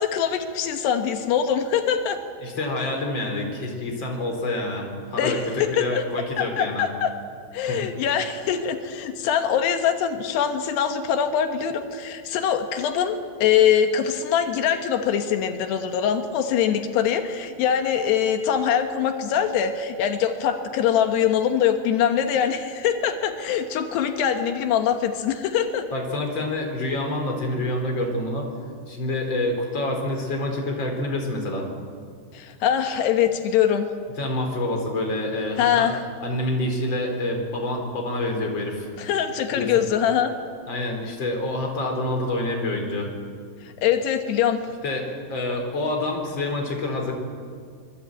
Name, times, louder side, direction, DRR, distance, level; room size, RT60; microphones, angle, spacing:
voice 1, 0.0-2.2 5.2-6.0 6.4-7.1 7.5-25.9 32.3-33.9 35.6-36.0 39.0-40.3 43.6-44.6, left 8 dB, 85° left, 6 dB, 3.4 m, -23 dB
voice 2, 2.4-6.8 7.7-7.9 25.9-28.5 28.9-31.7 34.2-35.9 36.2-38.9 39.5-39.7 40.7-43.1 44.8-47.1, left 1 dB, 30° left, 2 dB, 4.6 m, -27 dB
25.0 x 22.5 x 9.2 m, 2.1 s
omnidirectional pair, 4.7 m